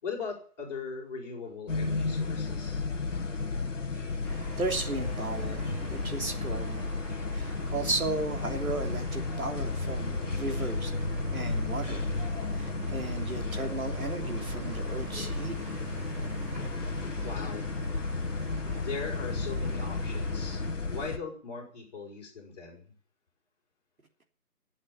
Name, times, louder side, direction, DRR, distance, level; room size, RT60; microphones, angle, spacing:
voice 1, 0.0-2.8 17.2-17.7 18.6-20.6 20.9-22.9, left 5 dB, 25° left, -2 dB, 6.3 m, -39 dB
sound 1, 1.7-21.2, left 4 dB, 50° left, 1.9 m, -33 dB
sound 2, 4.2-20.7, right 2 dB, 10° right, 1.7 m, -40 dB
voice 2, 4.6-6.9 7.3-10.9 11.3-12.1 12.5-15.6, right 3 dB, 65° right, 4 dB, 3.3 m, -35 dB
17.0 x 8.7 x 8.7 m, 0.43 s
figure-of-eight pair, 165°, 46 cm